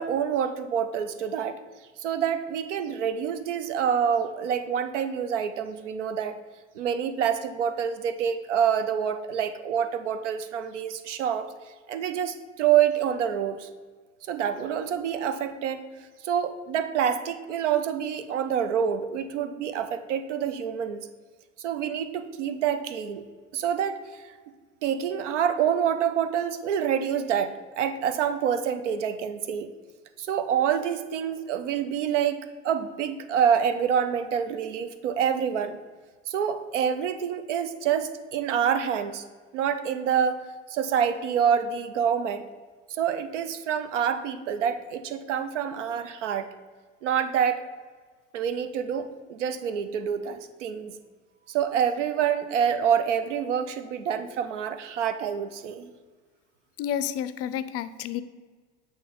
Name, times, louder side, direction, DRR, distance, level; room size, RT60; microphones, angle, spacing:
voice 1, 0.0-1.6 2.0-6.4 6.8-11.5 11.9-13.7 14.3-15.8 16.2-21.1 21.6-23.2 23.5-24.3 24.8-29.7 30.2-32.4 32.6-35.8 36.3-39.2 39.5-42.4 42.9-46.5 47.0-47.6 48.3-51.0 51.5-55.9, right 8 dB, 90° right, 11 dB, 0.5 m, -27 dB
voice 2, 56.8-58.2, left 9 dB, 45° left, 13 dB, 0.4 m, -30 dB
8.1 x 2.9 x 4.2 m, 1.5 s
hypercardioid pair, 75°, 35 cm